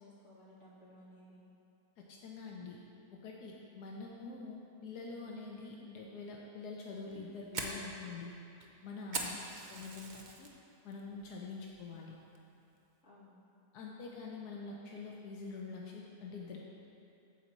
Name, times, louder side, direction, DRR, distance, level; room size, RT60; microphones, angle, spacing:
voice 1, 0.0-1.4 9.2-9.7 13.0-13.3, left 1 dB, 50° left, -8 dB, 2.4 m, -58 dB
voice 2, 2.0-2.8 3.2-8.3 8.8-10.5 10.8-12.1 13.7-16.6, left 4 dB, 90° left, -2 dB, 1.4 m, -45 dB
Fire, 7.0-10.5 10.9-11.3 11.7-11.8 12.4-12.7, right 3 dB, 45° right, 0.6 m, -41 dB
9.0 x 4.3 x 7.3 m, 2.9 s
omnidirectional pair, 1.7 m